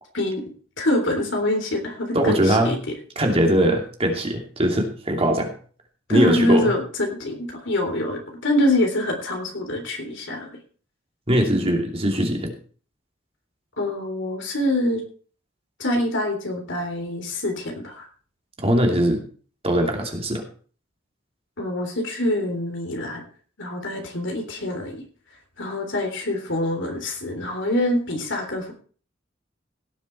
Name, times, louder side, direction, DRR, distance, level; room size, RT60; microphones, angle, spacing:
voice 1, 0.8-2.8 6.1-10.5 13.8-15.0 15.8-18.1 21.6-23.2 23.6-25.0 25.6-28.7, left 1 dB, 65° left, 3 dB, 3.5 m, -25 dB
voice 2, 2.1-2.8 3.2-5.5 6.1-6.7 11.3-12.5 18.6-19.2 19.6-20.4, equal, 30° right, 2 dB, 2.7 m, -21 dB
17.0 x 7.5 x 4.6 m, 0.41 s
head